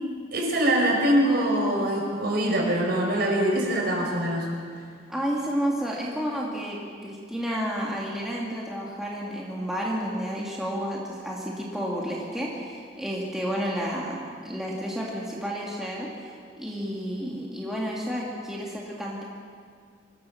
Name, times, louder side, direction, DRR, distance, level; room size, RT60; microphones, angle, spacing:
voice 1, 0.3-4.5, right 1 dB, 55° right, -1 dB, 5.0 m, -23 dB
voice 2, 5.1-19.2, equal, ahead, -4 dB, 2.2 m, -31 dB
25.5 x 15.0 x 7.1 m, 2.1 s
head